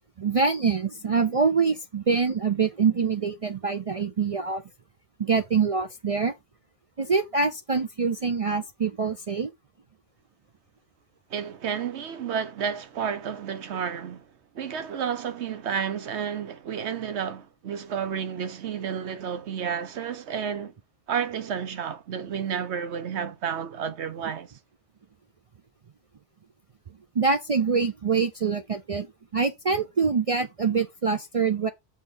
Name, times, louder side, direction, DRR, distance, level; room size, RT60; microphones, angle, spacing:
voice 1, 0.2-4.6 5.2-6.3 7.0-9.5 27.2-29.1 29.3-31.7, right 5 dB, 50° right, 0.4 m, -25 dB
voice 2, 11.3-14.3 14.5-20.7 21.1-24.5, right 7 dB, 70° right, 1.1 m, -31 dB
6.3 x 3.2 x 5.4 m
omnidirectional pair, 1.2 m